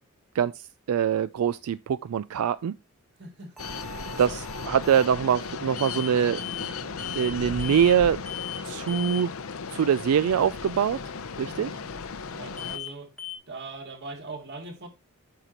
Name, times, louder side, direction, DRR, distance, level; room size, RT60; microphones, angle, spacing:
voice 1, 0.9-2.7 4.2-8.2 8.6-9.3 9.7-11.0 11.4-11.7, right 8 dB, 85° right, 0.3 m, -24 dB
voice 2, 3.2-3.6 11.4-11.9 12.3-13.1 13.5-14.9, right 3 dB, 50° right, 1.9 m, -41 dB
sound 1, 3.6-12.8, left 5 dB, 70° left, 0.7 m, -36 dB
sound 2, 3.6-5.1 5.8-6.1 6.4-6.7 7.0-7.3 7.6-8.0 8.3-8.6 8.9-9.2 12.6-12.9 13.2-13.4, left 8 dB, ahead, 1.1 m, -38 dB
9.1 x 6.6 x 2.9 m
head